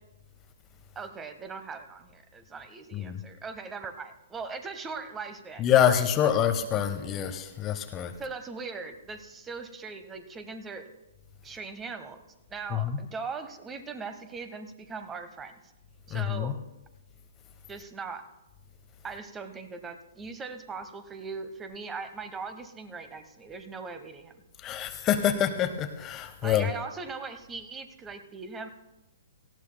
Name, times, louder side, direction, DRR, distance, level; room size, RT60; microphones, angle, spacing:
voice 1, 0.9-6.3 8.2-10.9 11.4-12.2 12.5-15.6 16.1-16.6 17.7-18.3 19.0-24.4 26.4-28.7, right 4 dB, 15° right, 9 dB, 1.0 m, -40 dB
voice 2, 2.9-3.2 5.6-8.1 12.7-13.0 16.1-16.5 24.6-26.7, left 9 dB, 25° left, 9 dB, 0.7 m, -26 dB
18.5 x 15.0 x 2.2 m, 0.99 s
figure-of-eight pair, 120°, 0 cm